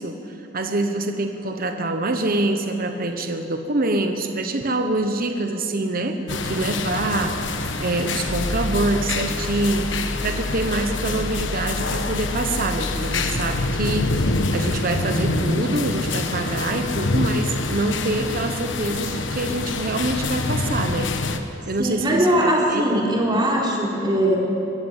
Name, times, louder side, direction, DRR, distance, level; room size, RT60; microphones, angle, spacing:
voice 1, 0.0-7.4 7.8-21.1 21.7-23.2, right 2 dB, 50° right, 6 dB, 1.1 m, -25 dB
sound 1, 6.3-21.4, left 2 dB, 75° left, 1.2 m, -26 dB
sound 2, 8.3-14.5, left 1 dB, 15° left, 0.6 m, -31 dB
voice 2, 21.8-24.4, right 1 dB, 25° right, -3 dB, 3.7 m, -20 dB
23.0 x 13.5 x 8.2 m, 2.9 s
head